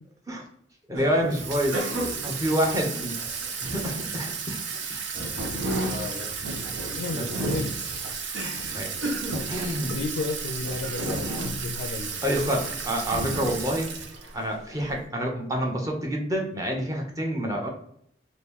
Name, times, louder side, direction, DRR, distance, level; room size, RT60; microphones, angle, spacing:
voice 1, 0.9-1.8 2.2-3.2 3.6-4.6 4.9-5.0 5.8-6.1 7.1-7.5 8.7-8.9 9.5-10.0 12.2-13.9 14.3-17.7, equal, 15° right, 0 dB, 0.7 m, -28 dB
sound 1, 0.9-4.2 4.7-14.3 14.7-15.0, equal, 85° right, 1.0 m, -34 dB
Water tap faucet / Sink (filling or washing), 1.3-14.4, right 6 dB, 65° right, 0.5 m, -34 dB
voice 2, 7.0-7.7 9.9-11.3 11.6-12.2, left 3 dB, 70° left, 5 dB, 0.4 m, -32 dB
2.9 x 2.6 x 3.5 m, 0.70 s
head